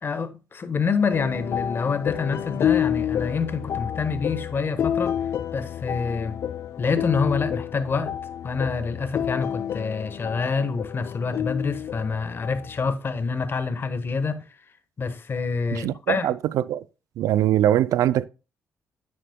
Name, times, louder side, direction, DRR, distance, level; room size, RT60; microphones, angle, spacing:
voice 1, 0.0-5.1 5.5-6.4 6.8-8.1 8.4-14.4 15.0-16.3, left 5 dB, 40° left, 1.2 m, -27 dB
sound 1, 1.1-12.9, left 9 dB, 60° left, 0.4 m, -29 dB
voice 2, 15.7-16.8 17.2-18.3, right 12 dB, 80° right, 0.3 m, -22 dB
9.2 x 7.4 x 2.2 m
cardioid pair, 75°, 6 cm